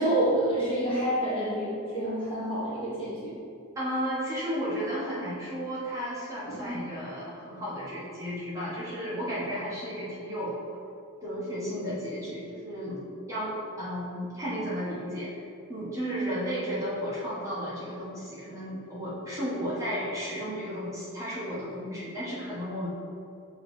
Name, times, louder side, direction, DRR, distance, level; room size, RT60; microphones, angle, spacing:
voice 1, 0.0-3.4 6.6-6.9, right 1 dB, 25° left, -9 dB, 1.4 m, -28 dB
voice 2, 3.7-10.5 11.2-13.0 13.3-15.4 15.7-22.9, equal, 15° right, -10 dB, 1.4 m, -33 dB
6.5 x 3.3 x 4.4 m, 2.5 s
head